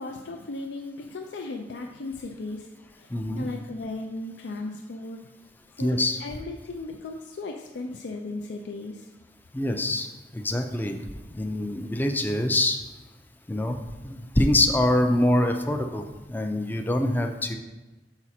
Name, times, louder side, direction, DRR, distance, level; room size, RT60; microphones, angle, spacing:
voice 1, 0.0-3.1 3.3-5.2 5.8-9.0, left 2 dB, 80° left, 2 dB, 0.5 m, -36 dB
voice 2, 3.1-3.5 5.8-6.2 9.5-10.1 10.3-11.0 11.3-12.8 13.5-13.8 14.0-17.5, left 1 dB, 10° left, 5 dB, 0.4 m, -24 dB
6.0 x 4.9 x 4.2 m, 1.2 s
head